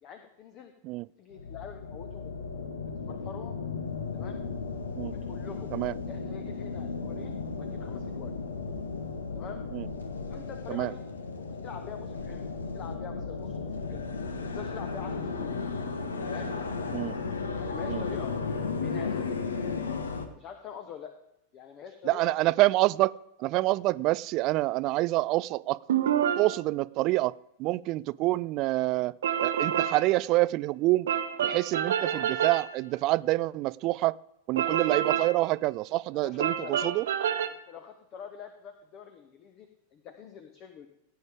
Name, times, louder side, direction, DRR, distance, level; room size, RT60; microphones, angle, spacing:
voice 1, 0.0-0.7 1.2-2.3 3.1-3.6 4.1-4.4 5.0-5.7 6.1-8.3 9.3-9.6 10.3-11.0 11.5-14.0 14.4-15.6 16.3-16.5 17.5-18.3 18.8-19.4 20.3-21.1 21.5-22.3 32.1-32.3 36.1-36.9 37.7-40.9, left 8 dB, 35° left, 7 dB, 1.1 m, -45 dB
sound 1, 1.3-20.3, left 4 dB, 70° left, 1.2 m, -35 dB
voice 2, 22.0-23.1 23.4-25.8 26.4-29.1 29.4-31.1 31.4-34.2 34.5-37.1, right 19 dB, 40° right, 21 dB, 0.3 m, -27 dB
sound 2, 25.9-26.6 29.2-30.1 31.1-32.7 34.6-35.4 36.4-37.5, right 9 dB, 60° right, 0.8 m, -28 dB
16.5 x 9.2 x 3.6 m, 0.81 s
figure-of-eight pair, 90°, 0 cm